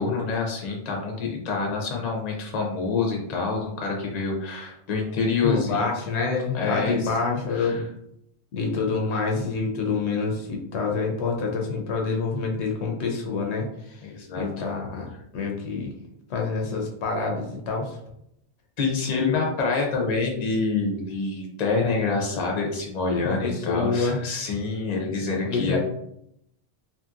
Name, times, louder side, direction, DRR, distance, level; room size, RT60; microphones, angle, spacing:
voice 1, 0.0-6.0 6.5-7.1 7.5-7.8 9.1-9.3 14.0-14.6 18.8-25.8, left 4 dB, 40° left, -1 dB, 0.7 m, -27 dB
voice 2, 5.4-7.8 8.5-14.0 14.3-15.9 16.3-17.9 23.2-24.2 25.3-25.8, left 4 dB, 75° left, 1 dB, 0.9 m, -27 dB
2.8 x 2.7 x 2.4 m, 0.77 s
omnidirectional pair, 1.2 m